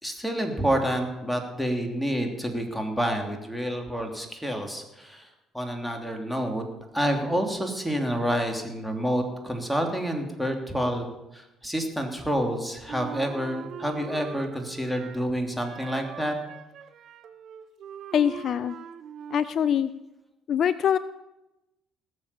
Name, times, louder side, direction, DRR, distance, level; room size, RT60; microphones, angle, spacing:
voice 1, 0.0-5.3 5.5-6.6 6.9-16.3, equal, ahead, 3 dB, 3.3 m, -28 dB
Wind instrument woodwind instrument, 12.9-15.3 15.6-19.7, right 8 dB, 60° right, 0.8 m, -42 dB
voice 2, 18.1-18.8 19.3-19.9 20.5-21.0, left 9 dB, 55° left, 16 dB, 0.5 m, -23 dB
19.0 x 7.4 x 7.1 m, 0.97 s
hypercardioid pair, 60°, 0 cm